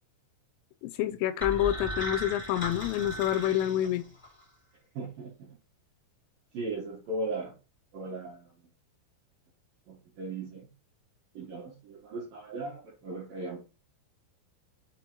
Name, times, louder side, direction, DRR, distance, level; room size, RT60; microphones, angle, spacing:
voice 1, 0.8-4.0, left 12 dB, 85° left, 3.0 m, -28 dB
sound 1, 1.4-4.4, left 1 dB, 20° left, 0.3 m, -37 dB
voice 2, 4.9-5.5 6.5-7.6 7.9-8.7 9.9-10.7 11.3-13.6, right 2 dB, 75° right, 2.1 m, -37 dB
7.5 x 2.8 x 4.5 m
omnidirectional pair, 6.0 m